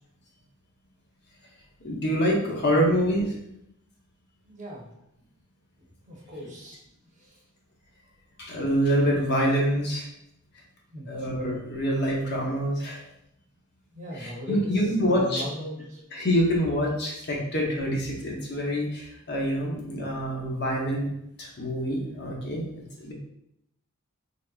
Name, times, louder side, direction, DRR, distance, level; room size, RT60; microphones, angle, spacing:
voice 1, 1.8-3.3 8.4-10.1 11.1-13.0 14.2-15.4 16.1-21.1 21.4-22.6 23.0-23.1, equal, 50° left, -2 dB, 0.8 m, -26 dB
voice 2, 4.5-4.9 5.2-5.3 6.1-6.8 7.1-7.4 10.9-11.1 13.9-14.7 15.0-16.0, left 1 dB, 35° right, -3 dB, 0.9 m, -38 dB
4.0 x 3.3 x 2.3 m, 0.77 s
head